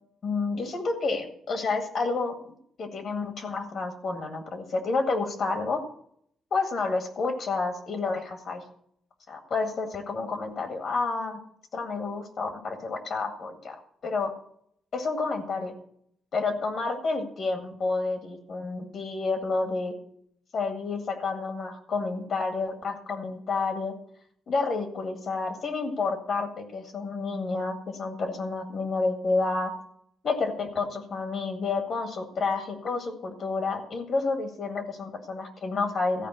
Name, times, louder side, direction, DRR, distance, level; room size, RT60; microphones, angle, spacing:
voice 1, 0.2-2.4 2.8-5.8 6.5-8.6 9.3-11.4 11.7-13.8 14.0-14.3 14.9-15.8 16.3-19.9 20.5-24.0 24.5-29.7 30.2-36.3, left 3 dB, 50° left, 5 dB, 1.9 m, -29 dB
14.5 x 5.2 x 9.1 m, 0.66 s
cardioid pair, 145°, 0 cm